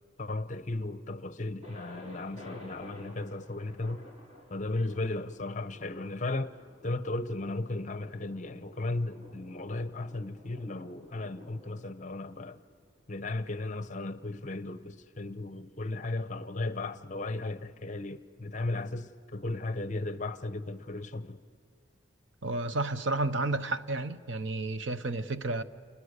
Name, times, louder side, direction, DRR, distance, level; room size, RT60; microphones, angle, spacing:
voice 1, 0.2-4.0 4.5-6.5 6.8-12.6 13.1-21.4, left 2 dB, 35° left, 0.8 m, -35 dB
Thunder, 1.6-13.4, left 1 dB, 35° right, 4.8 m, -53 dB
voice 2, 22.4-25.6, right 2 dB, 70° right, 0.9 m, -31 dB
29.5 x 29.0 x 6.7 m
head